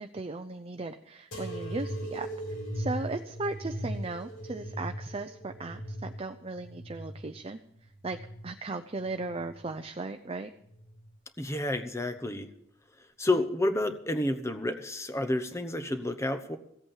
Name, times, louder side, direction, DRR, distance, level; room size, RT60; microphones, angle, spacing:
voice 1, 0.0-7.6 8.0-8.2 8.4-10.5, right 3 dB, 30° right, 6 dB, 0.6 m, -37 dB
sound 1, 1.3-8.5 9.0-9.8 10.6-11.1 12.1-12.2, equal, 90° left, 6.2 m, -39 dB
voice 2, 11.4-12.5 13.2-16.6, left 1 dB, 15° left, 9 dB, 0.9 m, -30 dB
16.0 x 8.4 x 7.3 m, 0.74 s
head